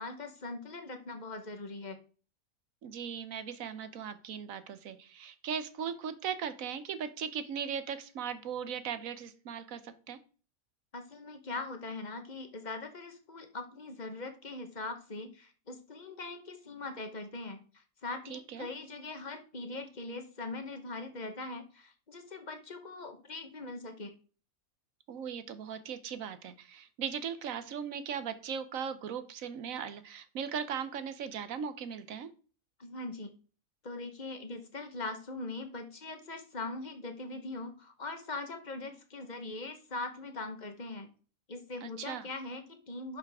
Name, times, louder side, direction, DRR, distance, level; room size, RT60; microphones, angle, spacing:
voice 1, 0.0-2.0 10.9-24.1 32.8-33.3 33.8-41.1 41.5-43.2, left 2 dB, 35° left, 6 dB, 1.1 m, -41 dB
voice 2, 2.8-10.2 18.3-18.7 25.1-32.3 41.8-42.3, right 7 dB, 75° right, 11 dB, 1.2 m, -38 dB
11.0 x 5.7 x 3.5 m, 0.39 s
omnidirectional pair, 1.5 m